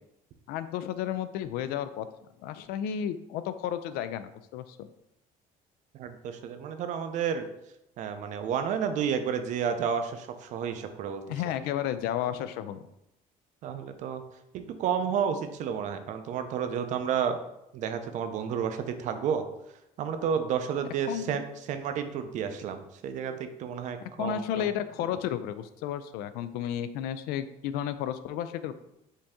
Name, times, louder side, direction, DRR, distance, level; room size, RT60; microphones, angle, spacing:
voice 1, 0.5-2.1 2.4-4.9 11.3-12.8 21.1-21.4 24.2-28.7, left 10 dB, 90° left, 12 dB, 0.4 m, -32 dB
voice 2, 5.9-7.5 8.0-11.2 13.6-14.2 14.5-17.4 17.7-19.4 20.0-24.7, right 7 dB, 55° right, 8 dB, 0.5 m, -31 dB
5.4 x 2.7 x 3.5 m, 0.86 s
cardioid pair, 160°, 15 cm